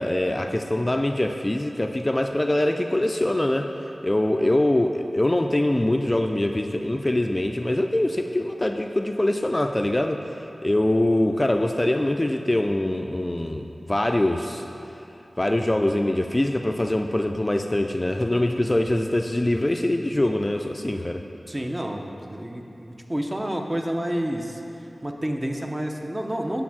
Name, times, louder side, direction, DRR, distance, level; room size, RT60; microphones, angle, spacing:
voice 1, 0.0-10.2 10.6-14.6 15.4-21.2, left 1 dB, 25° left, 5 dB, 0.3 m, -23 dB
voice 2, 18.5-18.8 21.5-24.6 25.0-26.6, equal, 25° right, 2 dB, 0.6 m, -29 dB
8.4 x 3.5 x 6.0 m, 2.8 s
wide cardioid pair, 55°, 0 cm